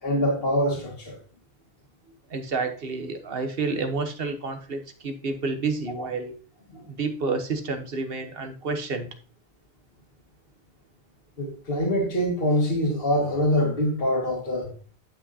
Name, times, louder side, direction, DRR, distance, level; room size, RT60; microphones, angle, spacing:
voice 1, 0.0-1.2 5.9-6.1 6.7-6.8 11.4-14.7, equal, 70° left, 2.2 m, -24 dB
voice 2, 2.3-6.3 6.9-9.1, right 4 dB, 65° right, 1.3 m, -29 dB
10.5 x 6.0 x 2.8 m
omnidirectional pair, 1.0 m